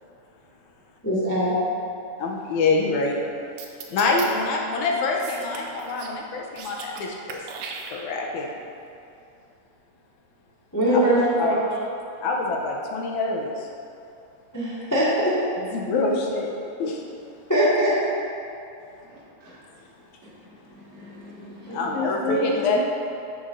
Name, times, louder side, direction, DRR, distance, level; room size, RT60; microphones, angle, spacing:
voice 1, 1.0-1.6 10.7-11.6 14.5-15.3 17.5-17.9 21.7-22.8, equal, 15° left, -10 dB, 0.7 m, -22 dB
voice 2, 2.2-3.2 3.9-7.4 7.9-8.6 10.9-11.0 11.4-11.6 12.2-13.7 15.7-16.5 16.8-17.0 21.8-22.8, left 3 dB, 80° left, 0 dB, 2.1 m, -25 dB
sound 1, 3.6-4.3 5.2-6.2 6.5-7.0 7.3-8.3, right 6 dB, 80° right, 1.9 m, -37 dB
voice 3, 19.1-19.6 20.7-22.7, left 1 dB, 65° right, -9 dB, 3.2 m, -44 dB
11.0 x 6.7 x 2.6 m, 2.6 s
omnidirectional pair, 3.5 m